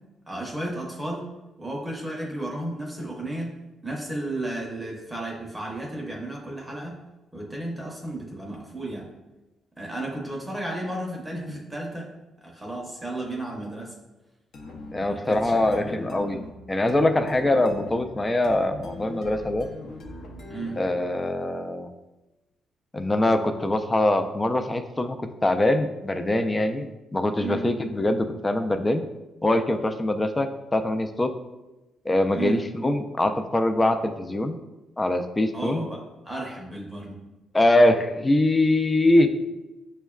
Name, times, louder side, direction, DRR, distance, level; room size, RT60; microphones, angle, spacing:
voice 1, 0.3-1.3 1.6-3.5 3.8-7.0 7.3-9.1 9.8-12.1 12.4-13.9 15.0-16.0 20.5-20.8 27.4-27.6 32.3-32.6 35.5-37.2, right 1 dB, 10° right, -2 dB, 0.7 m, -33 dB
sound 1, 14.5-21.0, left 2 dB, 65° left, 0.6 m, -40 dB
voice 2, 14.9-16.4 16.7-19.7 20.8-21.9 22.9-29.0 29.4-31.3 32.1-34.6 35.0-35.9 37.5-39.3, left 1 dB, 20° left, 7 dB, 0.3 m, -23 dB
6.1 x 2.1 x 2.3 m, 1.0 s
cardioid pair, 90°, 0 cm